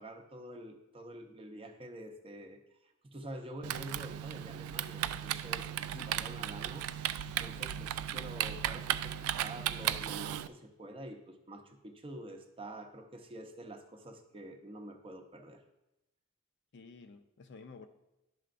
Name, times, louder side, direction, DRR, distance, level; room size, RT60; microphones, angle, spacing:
voice 1, 0.0-2.6 3.0-15.6, right 1 dB, 25° right, 5 dB, 0.7 m, -47 dB
Typing, 3.6-10.5, right 11 dB, 80° right, 0.3 m, -36 dB
voice 2, 16.7-17.9, left 4 dB, 55° left, 8 dB, 0.5 m, -51 dB
11.0 x 5.6 x 2.5 m, 0.93 s
head